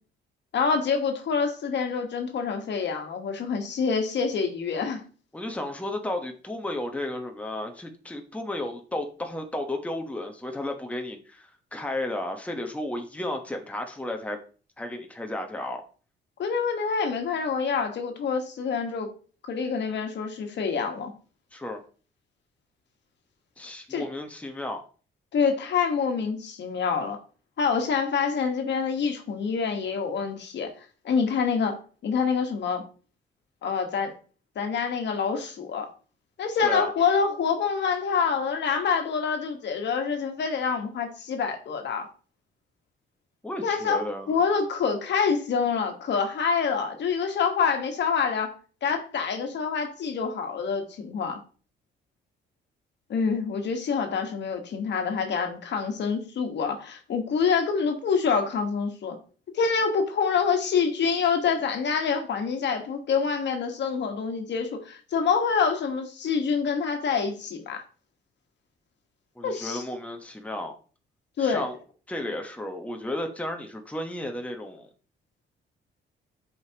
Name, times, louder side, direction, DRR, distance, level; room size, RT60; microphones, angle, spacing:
voice 1, 0.5-5.0 16.4-19.1 19.5-21.1 23.9-24.0 25.3-27.2 27.6-30.7 31.0-31.8 32.0-32.8 33.6-34.1 34.5-35.9 36.4-42.1 43.6-48.5 48.8-51.4 53.1-59.2 59.5-67.8 69.4-69.8 71.4-71.7, left 5 dB, 65° left, 4 dB, 1.4 m, -26 dB
voice 2, 5.3-14.4 14.8-15.8 21.5-21.8 23.6-24.8 36.6-36.9 43.4-44.4 69.4-70.8 71.4-71.7 72.1-74.9, left 1 dB, 5° left, 4 dB, 1.1 m, -33 dB
7.7 x 5.1 x 2.9 m, 0.39 s
cardioid pair, 90°, 20 cm